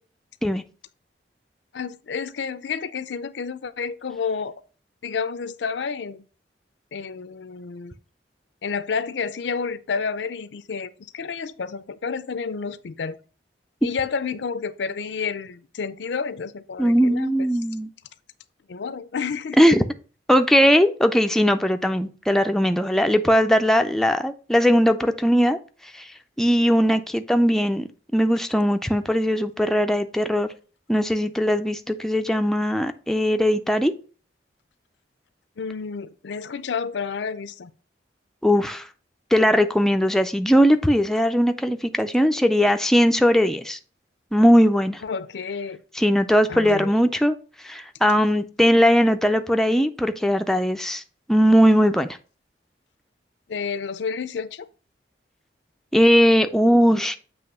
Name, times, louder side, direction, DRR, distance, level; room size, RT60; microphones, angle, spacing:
voice 1, 1.7-4.6 5.0-6.2 6.9-7.9 8.6-13.2 13.8-17.5 18.7-19.6 35.6-37.7 45.0-45.8 46.5-46.9 53.5-54.7, left 5 dB, 75° left, 0.5 m, -30 dB
voice 2, 16.8-17.9 19.6-19.8 20.3-25.6 25.9-26.1 26.4-30.5 30.9-33.9 38.4-38.9 39.3-43.8 44.3-45.0 46.0-47.4 47.6-51.0 51.3-52.1 55.9-57.2, equal, ahead, 0.4 m, -19 dB
7.7 x 3.0 x 5.4 m
head